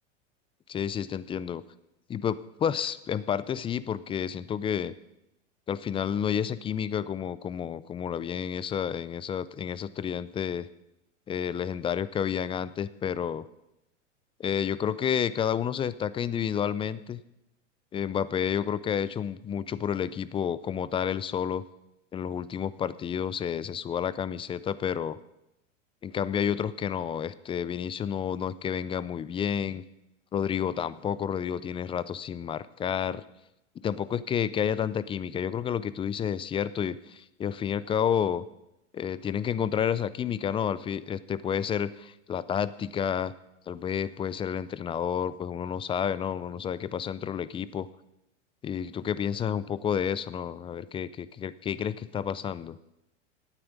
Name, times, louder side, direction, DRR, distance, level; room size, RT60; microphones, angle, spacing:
voice 1, 0.7-1.6 2.1-4.9 5.7-10.7 11.3-13.5 14.4-17.2 17.9-21.6 22.1-25.2 26.0-29.8 30.3-33.2 33.8-38.4 38.9-43.3 43.7-47.9 48.6-52.8, left 8 dB, 15° left, 17 dB, 0.4 m, -30 dB
9.1 x 8.7 x 9.5 m, 0.88 s
hypercardioid pair, 100°, 37 cm